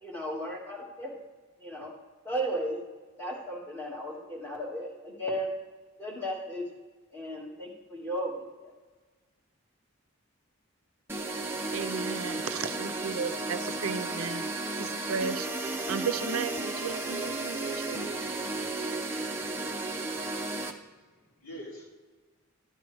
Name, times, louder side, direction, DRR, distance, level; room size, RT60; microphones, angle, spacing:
voice 1, 0.0-1.2 1.6-1.9 2.2-2.8 3.2-5.5 6.0-6.6 7.1-8.7, equal, 10° left, -4 dB, 2.0 m, -35 dB
sound 1, 11.1-20.7, right 2 dB, 10° right, 0.6 m, -33 dB
voice 2, 11.7-14.4 14.8-15.5 15.9-18.1, right 5 dB, 90° right, 12 dB, 0.6 m, -34 dB
voice 3, 20.6-21.9, equal, 85° left, -3 dB, 2.5 m, -47 dB
13.0 x 9.2 x 3.4 m, 1.3 s
head